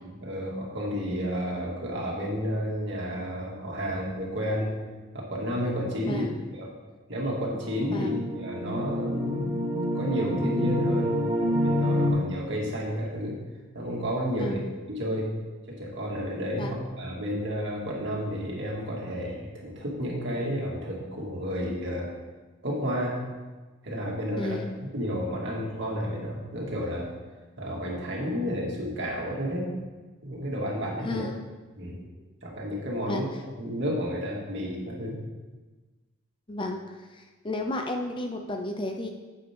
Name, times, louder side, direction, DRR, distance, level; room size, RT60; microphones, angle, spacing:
voice 1, 0.0-4.7 5.1-6.2 6.6-6.7 7.1-8.1 8.4-9.5 9.9-11.1 11.4-13.4 13.7-14.6 14.9-15.3 15.7-22.1 22.6-23.2 23.8-24.6 24.9-27.1 27.6-29.7 30.2-31.2 31.8-32.0 32.4-33.3 33.6-35.2, equal, 55° right, -3 dB, 2.5 m, -31 dB
voice 2, 6.0-6.4 7.9-8.2 14.3-14.7 16.6-16.8 24.4-24.7 31.0-31.4 33.1-33.2 36.5-39.1, left 1 dB, 25° left, 4 dB, 0.6 m, -33 dB
sound 1, 7.4-12.1, equal, 40° right, 2.5 m, -28 dB
10.5 x 8.4 x 3.7 m, 1.3 s
head